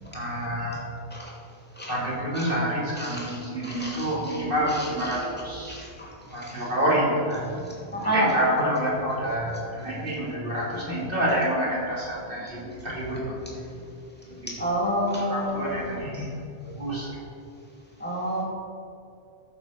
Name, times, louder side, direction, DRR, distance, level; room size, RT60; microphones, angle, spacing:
voice 1, 0.1-0.8 1.8-5.9 6.3-13.8 14.3-14.5 15.0-16.3 16.6-17.2, equal, 40° right, -6 dB, 3.2 m, -28 dB
voice 2, 3.0-3.4 3.6-4.4 5.7-6.1 6.4-6.6 7.9-8.3 14.5-15.9 18.0-18.4, equal, 5° left, -4 dB, 2.4 m, -29 dB
13.5 x 7.1 x 5.1 m, 2.6 s
omnidirectional pair, 1.4 m